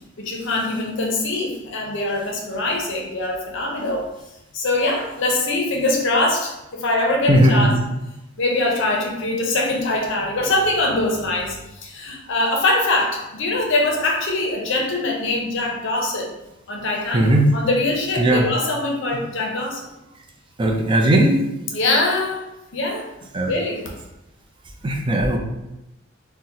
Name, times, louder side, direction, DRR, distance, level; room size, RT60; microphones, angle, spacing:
voice 1, 0.2-4.1 4.5-7.8 8.4-16.3 16.7-19.9 21.7-22.5 22.7-23.1 23.5-23.8, left 2 dB, 65° left, 0 dB, 0.6 m, -23 dB
voice 2, 7.3-7.8 17.1-17.6 18.2-18.4 20.6-21.4 23.3-23.5 24.8-25.4, right 1 dB, 25° right, 1 dB, 0.4 m, -17 dB
3.8 x 2.1 x 2.7 m, 0.92 s
head